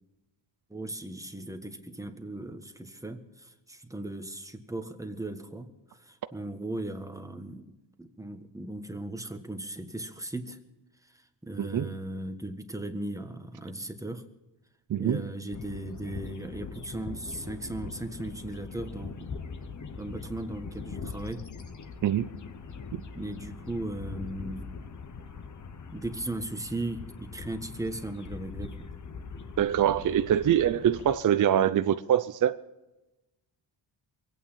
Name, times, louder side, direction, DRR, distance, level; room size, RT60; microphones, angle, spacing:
voice 1, 0.7-7.6 8.0-10.6 11.1-14.2 15.0-19.4 19.9-21.4 23.1-24.7 25.9-28.9, right 2 dB, 5° right, 1.5 m, -37 dB
voice 2, 11.6-11.9 14.9-15.2 22.0-22.3 29.6-32.6, right 10 dB, 45° right, 0.6 m, -24 dB
sound 1, 15.5-31.2, left 5 dB, 40° left, 1.2 m, -42 dB
23.5 x 9.1 x 5.7 m
cardioid pair, 100°, 44 cm